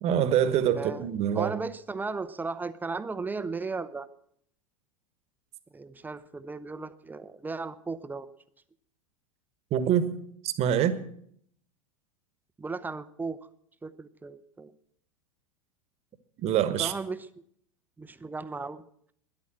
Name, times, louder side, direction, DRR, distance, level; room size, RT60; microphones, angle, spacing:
voice 1, 0.0-1.5 9.7-10.1 10.4-11.0 16.4-16.9, right 9 dB, 35° right, 1.3 m, -25 dB
voice 2, 0.8-1.1 1.3-4.1 5.7-8.3 12.6-13.4 13.8-14.7 16.8-17.3 18.0-18.8, right 4 dB, 10° right, 0.7 m, -35 dB
13.0 x 10.5 x 7.6 m
figure-of-eight pair, 95°, 18 cm